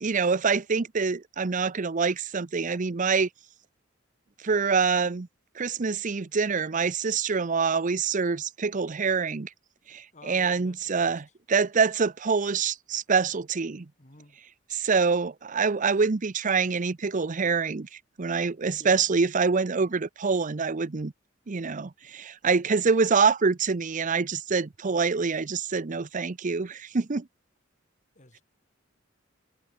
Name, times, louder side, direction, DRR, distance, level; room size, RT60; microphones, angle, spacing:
voice 1, 0.0-3.3 4.4-5.3 5.6-9.5 9.9-13.9 14.7-17.9 18.2-21.1 21.5-27.3, right 5 dB, 40° right, 0.6 m, -25 dB
voice 2, 10.1-11.2 14.0-14.4 18.7-19.0 28.1-28.4, left 2 dB, 40° left, 6.2 m, -51 dB
head